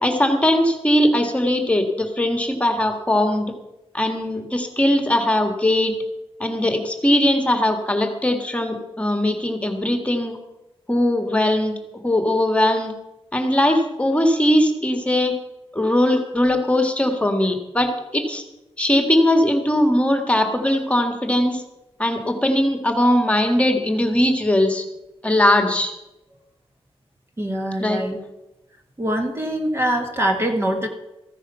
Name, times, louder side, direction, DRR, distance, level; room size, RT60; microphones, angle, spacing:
voice 1, 0.0-3.5 3.9-6.0 6.4-10.4 10.9-11.8 12.0-12.9 13.3-15.3 15.7-18.4 18.8-21.6 22.0-24.9 25.2-25.9 27.8-28.0, left 1 dB, 10° left, 4 dB, 1.7 m, -20 dB
voice 2, 27.4-28.2 29.0-30.9, right 1 dB, 25° right, 3 dB, 1.5 m, -23 dB
14.5 x 9.8 x 5.7 m, 0.96 s
wide cardioid pair, 145°, 10 cm